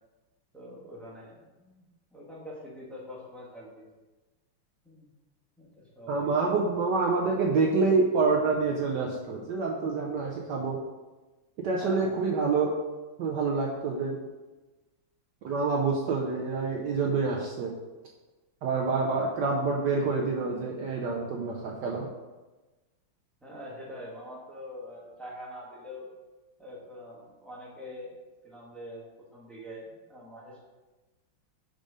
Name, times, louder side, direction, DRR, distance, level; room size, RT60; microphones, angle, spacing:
voice 1, 0.5-1.8 2.1-3.8 4.8-5.1 5.6-6.3 11.8-12.2 23.4-26.1 26.6-28.1 28.4-29.1 29.3-30.6, equal, ahead, -6 dB, 1.5 m, -44 dB
voice 2, 6.1-10.8 11.6-12.7 13.2-14.2 15.4-17.7 18.6-22.1, right 4 dB, 65° right, -1 dB, 1.2 m, -27 dB
5.4 x 5.2 x 5.0 m, 1.2 s
omnidirectional pair, 2.2 m